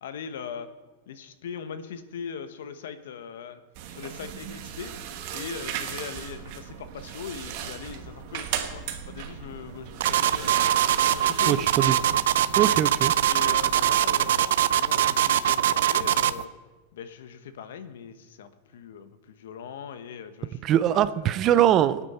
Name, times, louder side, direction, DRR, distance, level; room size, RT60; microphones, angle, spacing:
voice 1, 0.0-0.7 1.1-3.6 3.9-4.9 5.3-10.7 11.1-11.7 13.3-16.5 16.9-21.3, left 7 dB, 80° left, 10 dB, 1.2 m, -40 dB
sound 1, 3.8-14.0, right 9 dB, 45° right, 1.4 m, -37 dB
sound 2, 10.0-16.4, right 11 dB, 75° right, 0.5 m, -22 dB
voice 2, 11.5-11.9 12.6-13.1 20.6-22.0, right 11 dB, 25° right, 15 dB, 0.4 m, -22 dB
24.5 x 8.8 x 4.4 m, 1.2 s
supercardioid pair, 165°, 0 cm